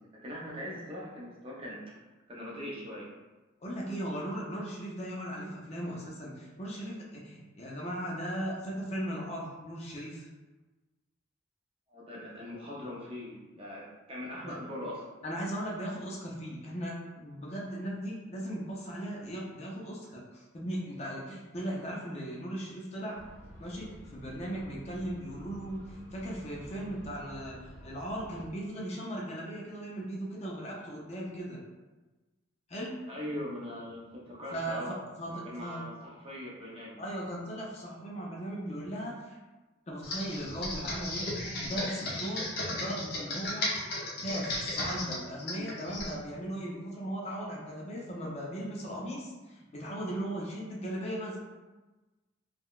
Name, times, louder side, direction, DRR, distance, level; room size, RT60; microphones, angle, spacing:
voice 1, 0.0-1.8 2.3-3.1 11.9-15.1 33.1-35.0 35.2-37.0, left 1 dB, 30° right, -5 dB, 0.6 m, -41 dB
voice 2, 3.6-10.3 14.4-14.6 15.2-23.3 23.6-31.6 32.7-32.9 34.5-34.8 35.2-35.8 37.0-39.4 39.9-41.3 41.6-43.7 44.2-51.4, right 1 dB, 30° left, -3 dB, 0.5 m, -38 dB
sound 1, 23.1-28.5, equal, 70° left, 1.2 m, -51 dB
Computer keyboard, 40.0-46.1, left 2 dB, 55° left, 0.8 m, -35 dB
3.6 x 2.2 x 2.3 m, 1.2 s
head